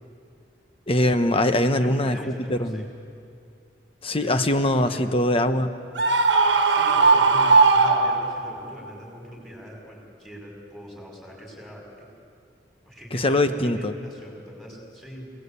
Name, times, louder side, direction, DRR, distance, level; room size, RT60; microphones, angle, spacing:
voice 1, 0.9-2.2 2.5-2.8 4.0-5.7 13.1-13.9, left 1 dB, 30° left, 9 dB, 1.1 m, -22 dB
voice 2, 1.6-2.8 4.1-5.4 6.7-12.1 12.9-15.3, equal, ahead, -1 dB, 5.4 m, -41 dB
Screaming, 6.0-8.6, right 4 dB, 70° right, 1.5 m, -18 dB
27.0 x 19.0 x 8.3 m, 2.4 s
head